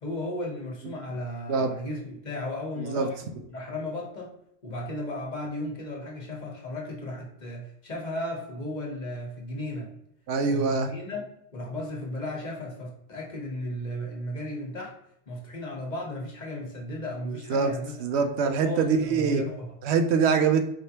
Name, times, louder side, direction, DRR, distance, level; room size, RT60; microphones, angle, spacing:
voice 1, 0.0-3.2 3.5-4.3 4.6-9.9 10.5-14.9 15.3-18.0 18.6-19.8, left 1 dB, 45° left, -1 dB, 1.1 m, -35 dB
voice 2, 10.3-10.9 17.5-17.7 18.0-19.4 19.8-20.7, right 5 dB, 80° right, 7 dB, 0.9 m, -23 dB
4.6 x 3.2 x 2.8 m, 0.77 s
omnidirectional pair, 1.1 m